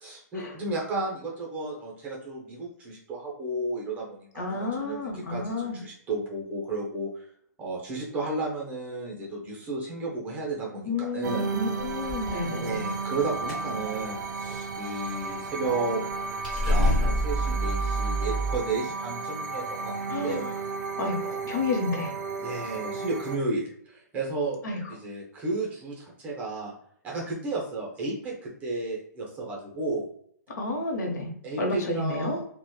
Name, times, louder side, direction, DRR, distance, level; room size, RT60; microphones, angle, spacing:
voice 1, 0.0-7.3 7.6-11.5 12.6-16.0 16.5-20.4 22.4-24.6 24.9-26.7 27.0-30.1 31.4-32.4, right 2 dB, 15° right, -2 dB, 0.6 m, -33 dB
voice 2, 4.4-5.8 10.8-12.9 20.1-20.5 21.0-22.1 24.6-24.8 30.6-31.3 31.6-32.4, left 2 dB, 75° left, 1 dB, 0.8 m, -30 dB
sound 1, 11.2-23.4, right 4 dB, 80° right, 0.4 m, -34 dB
sound 2, 11.8-12.4 12.8-13.2 13.5-13.7 14.0-14.2 16.1-16.2 16.4-18.6, equal, 5° left, 0.9 m, -26 dB
2.8 x 2.1 x 2.2 m, 0.66 s
hypercardioid pair, 160°, 10 cm